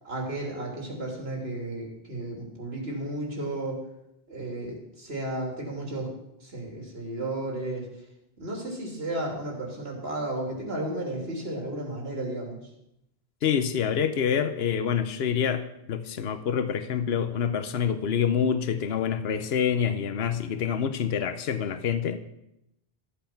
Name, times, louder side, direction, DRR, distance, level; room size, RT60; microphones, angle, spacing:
voice 1, 0.0-3.8 4.3-6.1 6.4-7.9 8.4-12.6, right 1 dB, 75° right, 0 dB, 3.2 m, -33 dB
voice 2, 13.4-22.2, left 7 dB, 80° left, 11 dB, 1.1 m, -27 dB
14.0 x 8.1 x 5.9 m, 0.83 s
omnidirectional pair, 1.0 m